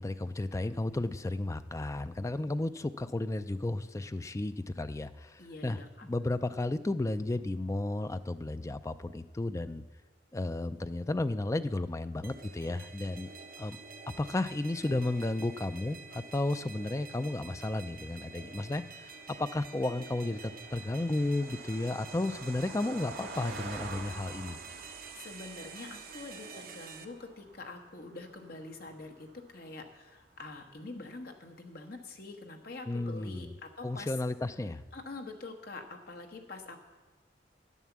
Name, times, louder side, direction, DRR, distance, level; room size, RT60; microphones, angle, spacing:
voice 1, 0.0-9.8 10.3-13.3 13.6-13.8 14.2-24.6 32.9-33.6 33.8-34.8, left 2 dB, 15° left, 12 dB, 0.4 m, -33 dB
voice 2, 5.4-6.1 25.1-34.1 34.9-36.8, left 3 dB, 60° left, 3 dB, 1.4 m, -45 dB
sound 1, 12.2-27.0, right 4 dB, 55° right, 0.9 m, -48 dB
Car passing by, 17.0-30.7, right 3 dB, 80° right, 1.8 m, -49 dB
11.0 x 9.2 x 7.2 m, 1.2 s
head